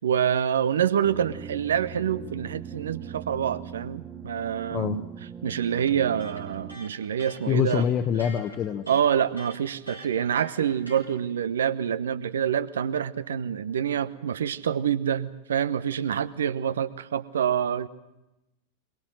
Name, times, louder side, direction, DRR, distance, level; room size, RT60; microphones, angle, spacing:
voice 1, 0.0-5.1 5.4-7.8 8.9-17.9, right 9 dB, 65° right, 16 dB, 1.0 m, -26 dB
sound 1, 1.0-6.8, right 8 dB, 20° right, 2.3 m, -40 dB
Electric guitar, 5.9-11.1, equal, 85° right, 4.2 m, -46 dB
voice 2, 7.5-8.8, left 8 dB, 30° left, 6 dB, 1.1 m, -25 dB
22.5 x 22.0 x 7.8 m, 0.94 s
figure-of-eight pair, 90°, 0 cm